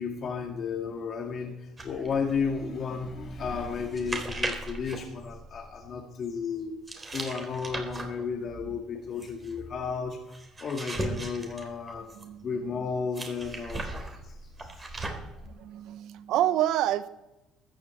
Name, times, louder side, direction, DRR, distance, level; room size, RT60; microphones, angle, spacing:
voice 1, 0.0-6.8 7.1-12.1 12.4-15.0, left 5 dB, 50° left, 3 dB, 1.9 m, -33 dB
sound 1, 1.8-5.9 6.9-12.4 13.1-15.5, right 2 dB, 25° right, 3.4 m, -38 dB
voice 2, 12.1-12.5 15.5-17.1, right 12 dB, 70° right, 15 dB, 0.7 m, -27 dB
14.0 x 7.3 x 8.3 m, 0.96 s
supercardioid pair, 75°, 0 cm